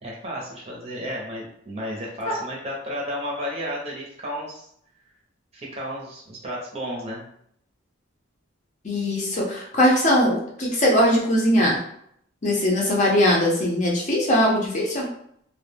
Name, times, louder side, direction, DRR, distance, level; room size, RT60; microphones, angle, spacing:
voice 1, 0.0-4.7 5.5-7.3, equal, 30° right, -3 dB, 0.6 m, -32 dB
voice 2, 8.8-11.8 12.4-15.1, equal, 35° left, -2 dB, 0.6 m, -20 dB
2.2 x 2.1 x 3.2 m, 0.69 s
head